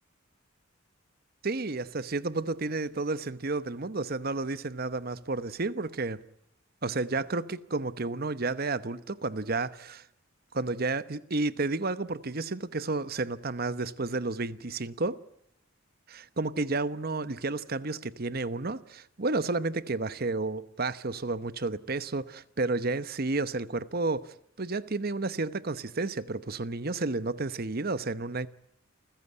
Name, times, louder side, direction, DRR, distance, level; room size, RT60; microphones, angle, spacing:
voice 1, 1.4-6.2 6.8-10.0 10.5-15.2 16.1-28.5, right 3 dB, 50° right, 1.0 m, -31 dB
28.5 x 15.5 x 9.7 m
head